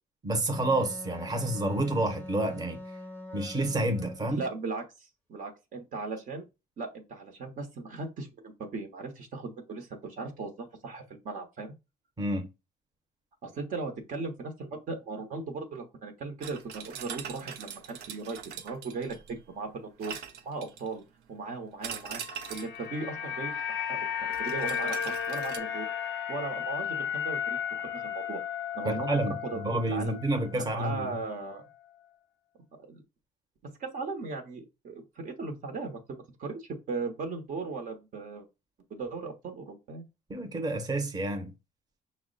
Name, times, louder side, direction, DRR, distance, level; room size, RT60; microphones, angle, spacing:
voice 1, 0.2-2.8 3.3-4.4 12.2-12.5 28.8-31.2 40.3-41.5, right 1 dB, 20° right, 1.0 m, -29 dB
Wind instrument woodwind instrument, 0.5-4.6, left 1 dB, 10° left, 0.6 m, -43 dB
voice 2, 4.3-6.5 6.8-11.7 13.4-20.2 20.4-21.0 21.3-22.2 22.5-25.9 26.3-28.4 28.7-30.1 30.6-31.6 32.9-33.0 33.6-38.5 38.9-40.1, right 3 dB, 50° right, 1.0 m, -38 dB
sound 1, 16.4-19.4 20.0-21.0 21.8-22.8 24.3-25.6, right 8 dB, 75° right, 0.7 m, -42 dB
sound 2, 22.2-30.5 30.8-31.0, left 8 dB, 85° left, 0.5 m, -34 dB
5.6 x 2.1 x 3.9 m
cardioid pair, 110°, 17 cm